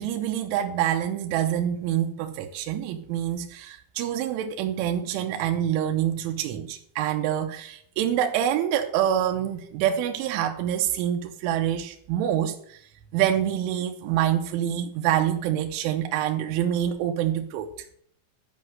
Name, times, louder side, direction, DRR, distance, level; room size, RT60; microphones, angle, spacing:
voice 1, 0.0-12.8 13.1-17.7, right 10 dB, 85° right, 3.2 m, -26 dB
13.0 x 5.3 x 7.6 m
omnidirectional pair, 5.7 m